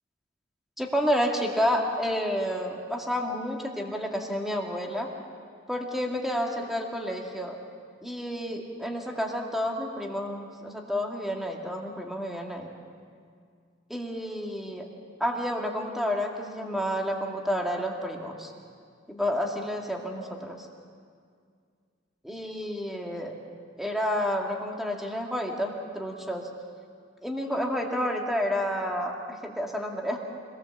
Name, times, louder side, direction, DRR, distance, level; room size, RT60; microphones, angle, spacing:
voice 1, 0.8-5.1 5.7-7.6 8.0-12.7 13.9-14.9 15.2-18.5 19.1-20.7 22.2-23.4 23.8-26.5 27.2-30.2, equal, ahead, 0 dB, 2.2 m, -30 dB
25.5 x 18.5 x 7.3 m, 2.1 s
head